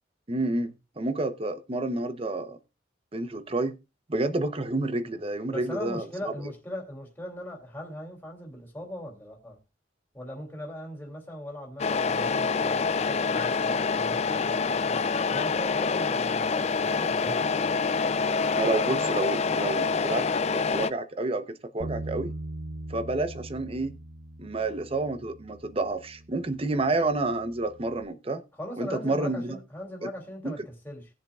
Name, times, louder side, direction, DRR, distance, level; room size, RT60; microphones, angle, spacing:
voice 1, 0.3-2.6 3.1-3.8 4.1-6.5 18.6-20.3 20.5-22.3 22.9-24.0 24.4-28.4 28.8-29.6 30.0-30.1 30.4-30.5, right 2 dB, 30° right, 0.8 m, -29 dB
voice 2, 5.5-9.6 10.1-17.7 28.6-31.1, equal, 10° left, 2.7 m, -40 dB
Truck, 11.8-20.9, left 4 dB, 35° left, 0.4 m, -26 dB
Bass guitar, 21.8-28.1, right 2 dB, 75° right, 0.9 m, -41 dB
19.5 x 7.4 x 2.4 m
head